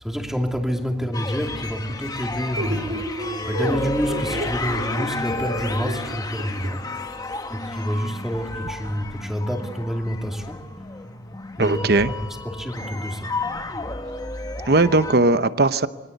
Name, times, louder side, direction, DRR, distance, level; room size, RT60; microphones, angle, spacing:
voice 1, 0.0-6.8 7.5-10.7 11.6-12.2 12.4-13.3, equal, ahead, 2 dB, 2.7 m, -28 dB
sound 1, 1.1-15.1, left 2 dB, 20° left, 1.2 m, -32 dB
sound 2, 2.6-6.7, right 1 dB, 90° right, 4.1 m, -32 dB
voice 2, 11.6-12.1 14.7-15.9, right 2 dB, 60° right, 13 dB, 0.9 m, -18 dB
27.5 x 23.0 x 8.1 m, 1.3 s
head